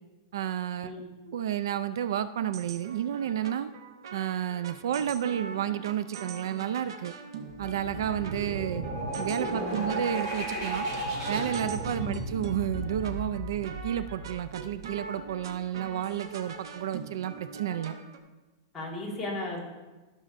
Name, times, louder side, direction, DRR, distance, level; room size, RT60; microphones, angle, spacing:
voice 1, 0.3-0.9 1.3-3.7 4.1-7.1 7.6-8.8 9.2-10.9 11.3-17.9, right 10 dB, 70° right, 13 dB, 0.3 m, -31 dB
sound 1, 2.5-18.2, right 5 dB, 85° right, 1.0 m, -43 dB
sound 2, 7.5-15.1, right 1 dB, 35° right, 2.7 m, -34 dB
voice 2, 9.5-9.8 12.0-12.2 18.7-19.6, left 1 dB, 10° left, -6 dB, 1.7 m, -36 dB
15.0 x 6.2 x 2.5 m, 1.2 s
supercardioid pair, 175°, 2 cm